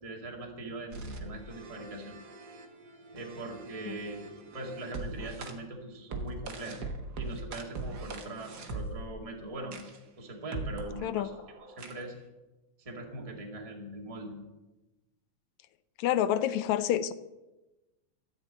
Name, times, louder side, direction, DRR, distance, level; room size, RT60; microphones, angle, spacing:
voice 1, 0.0-2.1 3.1-6.8 7.2-9.8 10.2-11.3 11.8-12.1 12.8-14.4, right 2 dB, 15° right, 0 dB, 1.6 m, -41 dB
sound 1, 0.9-5.5 6.1-9.2 9.7-10.0 10.5-12.1, right 2 dB, 50° right, 1.2 m, -41 dB
voice 2, 16.0-17.1, left 11 dB, 80° left, 14 dB, 1.9 m, -28 dB
14.0 x 6.1 x 8.5 m, 1.1 s
omnidirectional pair, 3.3 m